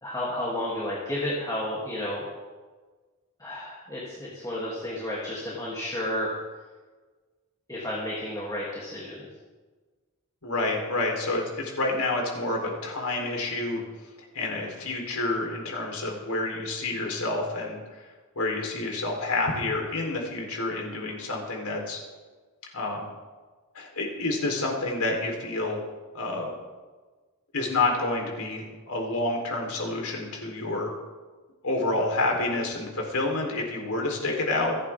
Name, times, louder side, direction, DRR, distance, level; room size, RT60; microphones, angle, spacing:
voice 1, 0.0-2.2 3.4-6.3 7.7-9.3, left 1 dB, 15° left, -6 dB, 3.0 m, -32 dB
voice 2, 10.4-13.8 14.3-18.1 18.4-22.0 22.7-23.1 23.7-25.8 26.1-26.5 27.5-30.9 31.6-34.8, left 2 dB, 75° left, 0 dB, 4.1 m, -28 dB
27.0 x 11.0 x 3.7 m, 1.3 s
head